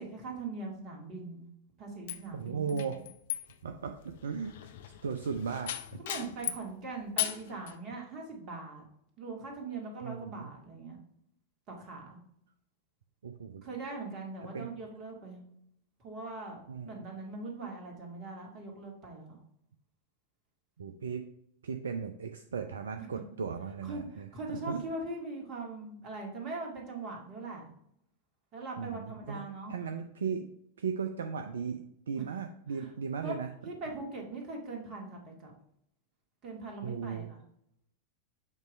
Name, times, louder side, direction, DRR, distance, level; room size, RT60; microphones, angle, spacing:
voice 1, 0.0-1.5 1.8-3.0 5.3-5.5 6.0-8.8 9.2-11.0 11.7-12.2 13.6-15.4 16.0-19.4 23.8-27.7 28.5-29.8 32.2-32.3 32.8-32.9 33.2-33.3 33.6-35.5 36.4-37.4, right 3 dB, 35° right, 0 dB, 2.0 m, -41 dB
sound 1, 2.1-6.7 7.2-7.7, left 12 dB, 55° left, 0.5 m, -37 dB
voice 2, 2.3-3.0 3.6-4.7 5.0-6.0 10.0-10.5 13.2-13.6 14.4-14.7 16.7-17.0 20.8-21.3 21.6-24.8 28.8-29.4 29.7-30.5 30.8-33.5 36.8-37.3, right 6 dB, 65° right, 6 dB, 0.4 m, -37 dB
7.3 x 3.1 x 5.1 m, 0.73 s
figure-of-eight pair, 90°, 0 cm